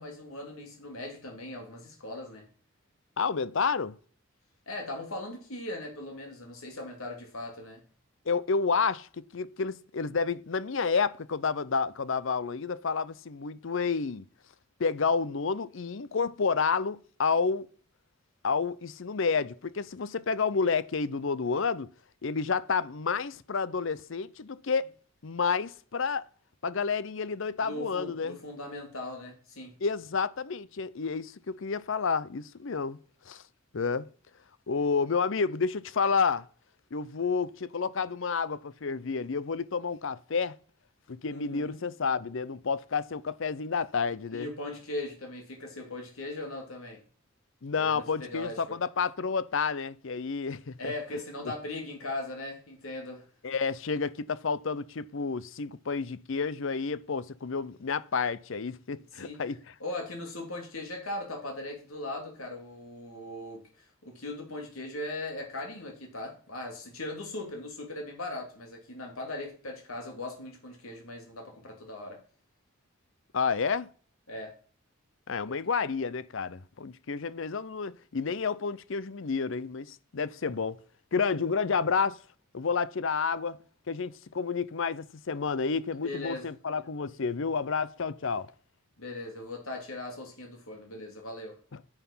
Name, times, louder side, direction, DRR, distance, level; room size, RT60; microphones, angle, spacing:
voice 1, 0.0-2.5 4.7-7.8 27.6-29.7 41.2-41.8 44.3-47.0 47.8-48.6 50.8-53.2 59.2-59.4 59.8-63.6 64.0-72.2 74.3-74.5 75.5-75.6 86.0-86.5 89.0-91.6, left 2 dB, 85° left, 3.0 m, -39 dB
voice 2, 3.2-4.0 8.3-14.2 14.8-17.7 18.4-21.9 22.2-24.9 25.2-26.3 26.6-28.4 29.8-33.0 33.3-33.4 33.7-34.1 34.7-36.4 36.9-40.6 41.1-44.5 47.6-50.8 53.4-59.6 73.3-73.9 75.3-80.8 81.1-82.2 82.5-83.6 83.9-88.5, left 5 dB, 60° left, 0.6 m, -30 dB
9.8 x 8.1 x 5.6 m
head